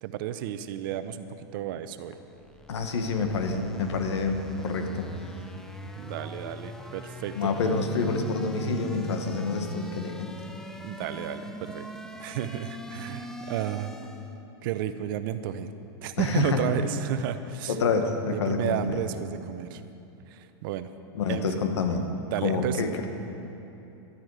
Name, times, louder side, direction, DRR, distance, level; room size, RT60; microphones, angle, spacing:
voice 1, 0.0-2.2 5.9-7.5 10.8-11.9 12.2-13.9 14.6-15.7 16.0-17.8 18.3-19.8 20.3-20.9 21.3-21.5 22.3-22.8, right 10 dB, 55° right, 11 dB, 0.7 m, -32 dB
sound 1, 2.2-14.4, equal, 5° left, 0.5 m, -42 dB
voice 2, 2.7-5.1 7.4-10.3 16.2-16.6 17.7-19.0 21.1-22.0 22.4-23.1, left 4 dB, 90° left, 5 dB, 1.6 m, -27 dB
13.5 x 11.5 x 4.9 m, 2.9 s
supercardioid pair, 150°, 14 cm